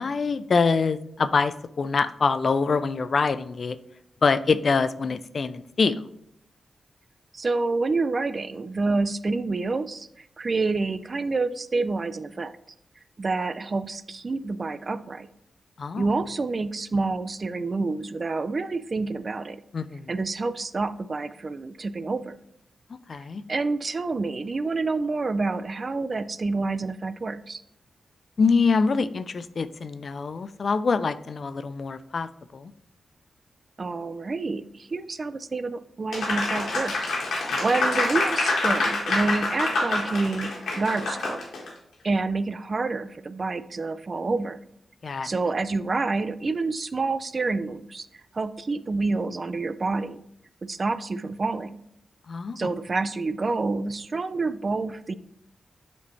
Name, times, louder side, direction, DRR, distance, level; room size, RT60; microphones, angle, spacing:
voice 1, 0.0-3.8 4.2-6.0 15.8-16.1 19.7-20.1 23.1-23.4 28.4-32.7 37.5-37.6 45.0-45.3 52.3-52.6, left 4 dB, 60° left, 13 dB, 0.3 m, -25 dB
voice 2, 7.3-12.6 13.2-15.3 16.0-19.6 20.1-22.4 23.5-27.6 33.8-40.5 40.8-41.4 42.0-44.6 45.2-48.1 48.3-50.2 50.6-51.8 52.6-55.1, right 3 dB, 45° right, 14 dB, 0.4 m, -28 dB
Applause, 36.1-41.7, left 2 dB, 90° left, 1.4 m, -26 dB
7.0 x 4.3 x 3.1 m, 0.73 s
cardioid pair, 60°, 0 cm